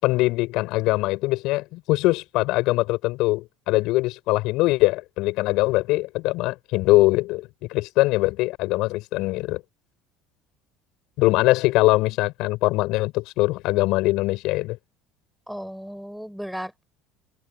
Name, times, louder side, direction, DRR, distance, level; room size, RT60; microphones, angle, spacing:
voice 1, 0.0-9.6 11.2-14.8, left 20 dB, 65° left, 7.0 m, -22 dB
voice 2, 15.5-16.8, equal, ahead, 7.8 m, -35 dB
hypercardioid pair, 75°, 0 cm